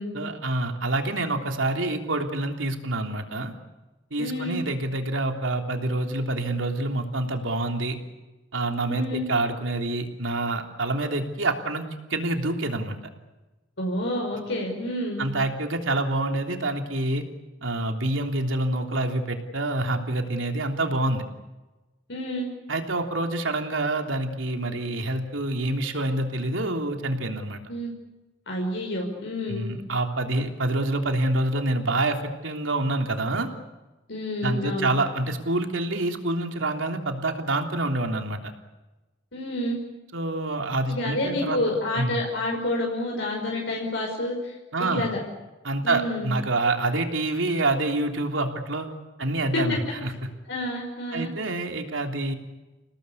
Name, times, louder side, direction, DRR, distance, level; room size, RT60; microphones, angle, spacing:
voice 1, 0.1-3.5 4.1-8.0 8.5-13.0 15.2-17.2 17.6-21.2 22.7-27.6 29.5-33.5 34.4-38.5 40.1-41.6 42.0-42.2 44.7-45.1 45.6-48.9 49.2-50.1 51.1-52.3, right 2 dB, 90° right, 4 dB, 3.3 m, -27 dB
voice 2, 4.2-4.6 8.9-9.3 13.8-15.3 22.1-22.5 27.7-27.9 28.5-29.7 34.1-34.9 39.3-39.8 40.9-44.5 44.8-45.2 45.8-46.3 49.5-49.6 50.5-51.3, left 1 dB, 70° left, -1 dB, 5.6 m, -29 dB
29.5 x 18.5 x 8.5 m, 1.1 s
head